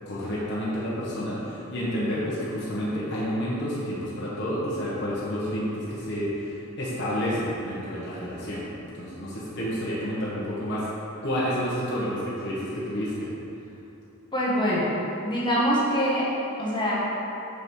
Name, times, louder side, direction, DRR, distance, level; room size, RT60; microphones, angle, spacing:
voice 1, 0.0-8.7 9.0-10.9 11.2-13.3, equal, 50° left, -8 dB, 1.2 m, -29 dB
voice 2, 14.3-14.9 15.2-16.3 16.6-17.0, equal, 20° left, -7 dB, 1.4 m, -24 dB
5.9 x 5.5 x 4.7 m, 2.9 s
head